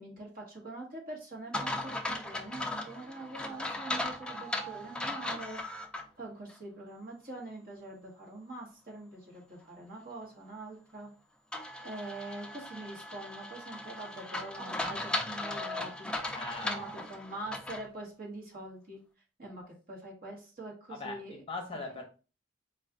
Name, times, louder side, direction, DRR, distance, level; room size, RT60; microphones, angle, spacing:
voice 1, 0.0-5.6 6.2-11.1 11.8-16.1 16.6-19.0 19.4-19.6 19.9-21.4, right 2 dB, 45° right, 1.3 m, -44 dB
sound 1, 1.5-6.0 6.5-6.6 11.5-17.9, left 2 dB, 5° left, 0.3 m, -37 dB
voice 2, 16.3-16.8 20.9-22.0, left 3 dB, 25° left, 0.7 m, -40 dB
4.2 x 2.4 x 3.5 m
head